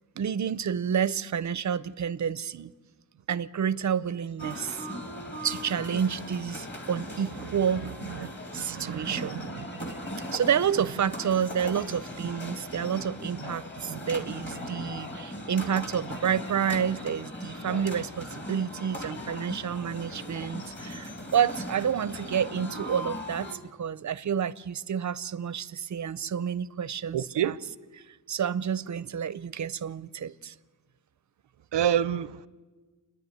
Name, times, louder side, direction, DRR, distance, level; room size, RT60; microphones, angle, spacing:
voice 1, 0.2-2.7 3.3-4.9 5.4-7.8 8.5-9.4 10.3-27.2 27.4-27.5 28.3-30.5, right 8 dB, 45° right, 0.5 m, -29 dB
sound 1, 4.4-23.6, left 1 dB, 25° left, 1.9 m, -39 dB
voice 2, 8.6-10.0 13.4-13.5 13.9-14.0 27.1-27.5 31.7-32.5, right 9 dB, 90° right, 0.7 m, -29 dB
28.5 x 10.5 x 9.3 m
wide cardioid pair, 160°, 41 cm